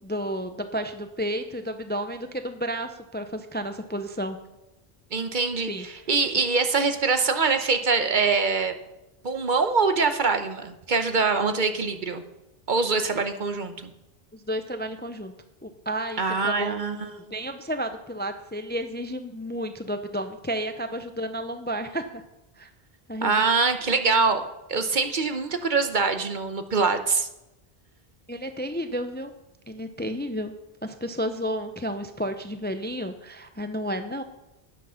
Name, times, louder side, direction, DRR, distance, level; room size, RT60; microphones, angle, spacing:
voice 1, 0.0-4.4 5.7-6.0 14.3-15.3 15.6-16.8 17.3-22.2 22.6-22.7 23.1-23.4 28.3-29.3 29.7-30.5 30.8-34.2, equal, 15° left, 8 dB, 0.5 m, -32 dB
voice 2, 5.1-8.7 9.2-12.2 12.7-13.9 16.2-17.1 23.2-24.4 24.7-27.3, right 4 dB, 50° right, 8 dB, 1.0 m, -24 dB
12.0 x 9.0 x 5.7 m, 0.96 s
omnidirectional pair, 1.0 m